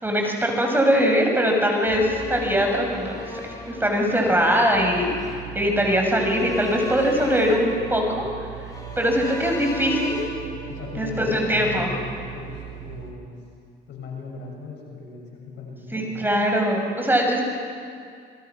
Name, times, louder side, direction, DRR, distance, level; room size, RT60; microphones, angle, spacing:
voice 1, 0.0-3.3 3.7-8.3 9.0-10.2 10.9-11.9 15.9-17.4, equal, 10° right, 1 dB, 6.0 m, -22 dB
sound 1, 1.9-12.0 12.3-12.4, left 1 dB, 20° left, 6.5 m, -38 dB
sound 2, 4.7-13.1, right 9 dB, 90° right, 2.5 m, -39 dB
voice 2, 10.7-13.4 13.9-16.2, left 4 dB, 80° left, 0 dB, 6.8 m, -37 dB
28.0 x 22.5 x 6.1 m, 2.2 s
cardioid pair, 85°, 19 cm